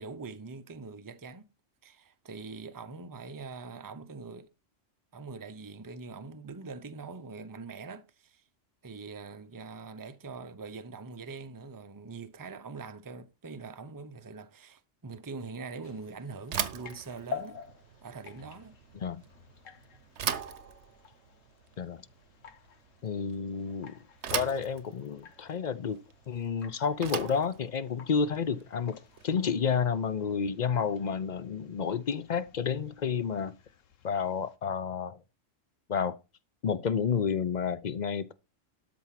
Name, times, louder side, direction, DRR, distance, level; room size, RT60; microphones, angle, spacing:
voice 1, 0.0-1.4 1.8-4.5 5.1-8.4 8.8-17.6 18.0-18.8, right 4 dB, 20° right, 0.7 m, -43 dB
sound 1, 15.8-34.6, left 7 dB, 85° left, 1.4 m, -50 dB
Bicycle / Thump thud, 16.4-29.5, right 8 dB, 65° right, 1.2 m, -40 dB
voice 2, 23.0-23.9 24.3-26.0 26.3-29.0 29.2-33.5 34.0-35.2 35.9-36.2 36.6-38.3, left 6 dB, 50° left, 0.6 m, -30 dB
12.5 x 4.5 x 5.8 m
omnidirectional pair, 1.3 m